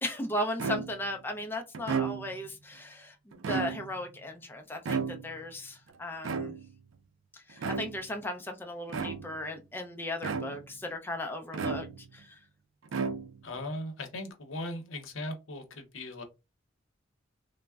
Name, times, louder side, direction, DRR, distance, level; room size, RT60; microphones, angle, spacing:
voice 1, 0.0-6.5 7.3-11.9 12.1-12.4, left 1 dB, 10° left, 3 dB, 0.3 m, -36 dB
sound 1, 0.6-1.1 1.7-2.5 3.3-4.1 4.8-5.5 6.2-6.9 7.6-8.1 8.9-9.5 10.2-10.8 11.5-12.2 12.9-13.6, right 5 dB, 80° right, 0.4 m, -34 dB
voice 2, 13.4-16.2, left 1 dB, 80° left, 6 dB, 0.7 m, -38 dB
3.4 x 2.0 x 2.3 m, 0.26 s
head